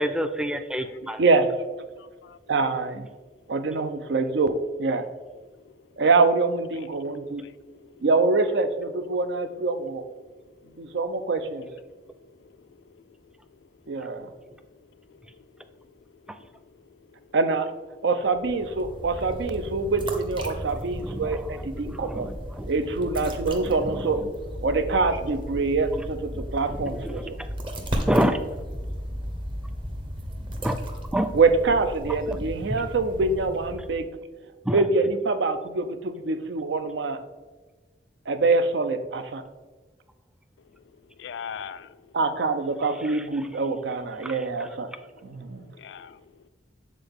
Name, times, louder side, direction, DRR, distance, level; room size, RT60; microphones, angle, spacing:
voice 1, 0.0-1.2 21.0-21.3 21.9-22.7 23.9-24.3 26.8-27.3 28.0-28.4 30.6-30.8 31.1-31.3 34.7-34.8 44.2-44.3, equal, 5° right, 8 dB, 0.3 m, -27 dB
voice 2, 0.7-1.2 2.0-2.4 5.6-5.7 7.0-8.0 10.3-11.0 12.1-13.0 14.0-14.1 14.5-14.6 15.1-15.7 16.1-17.4 27.4-27.5 41.2-42.1 44.9-45.3 45.6-46.5, left 7 dB, 85° left, 14 dB, 0.3 m, -45 dB
voice 3, 2.5-3.1 3.5-5.1 6.0-7.4 8.0-10.0 10.8-11.7 13.9-14.3 17.3-17.7 18.0-22.3 22.7-24.2 24.6-27.4 31.3-34.1 34.7-37.2 38.3-39.4 42.1-44.9 45.2-45.7, right 3 dB, 80° right, 10 dB, 0.5 m, -25 dB
sound 1, 18.2-34.1, equal, 30° right, 0.7 m, -35 dB
7.4 x 3.9 x 3.5 m, 1.3 s
head